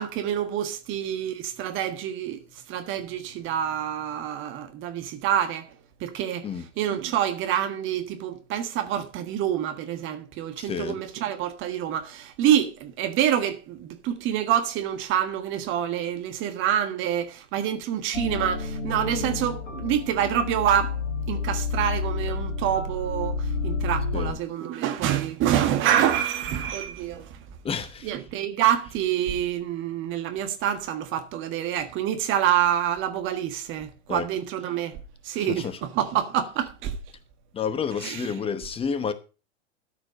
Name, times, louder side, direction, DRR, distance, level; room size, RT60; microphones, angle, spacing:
voice 1, 0.0-2.4 2.7-5.7 6.0-6.5 6.8-21.0 21.3-27.3 28.0-35.0 35.2-36.9 38.0-38.3, right 10 dB, 35° right, 1.5 m, -27 dB
voice 2, 10.6-11.0 24.1-24.4 27.6-28.1 34.1-34.3 35.3-35.8 37.5-39.1, left 6 dB, 15° left, 1.0 m, -30 dB
sound 1, 18.1-24.3, left 4 dB, 80° left, 1.7 m, -30 dB
13.0 x 5.0 x 6.1 m
figure-of-eight pair, 95°, 36 cm